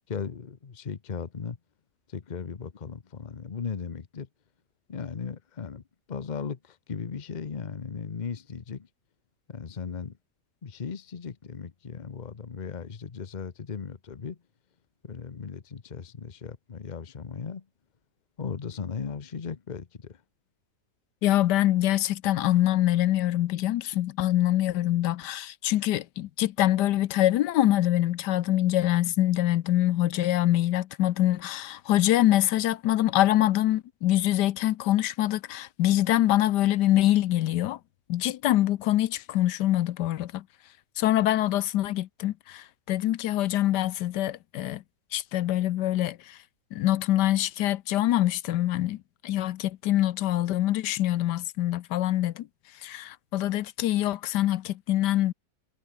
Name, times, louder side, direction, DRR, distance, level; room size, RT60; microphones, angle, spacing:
voice 1, 0.1-1.6 2.1-4.3 4.9-5.8 6.1-8.9 9.5-10.2 10.6-14.4 15.0-17.7 18.4-20.2, left 6 dB, 30° left, 0.9 m, -37 dB
voice 2, 21.2-37.8 38.1-40.4 41.0-44.8 45.1-46.4 46.7-52.5 52.8-55.3, left 14 dB, 80° left, 1.3 m, -24 dB
omnidirectional pair, 1.8 m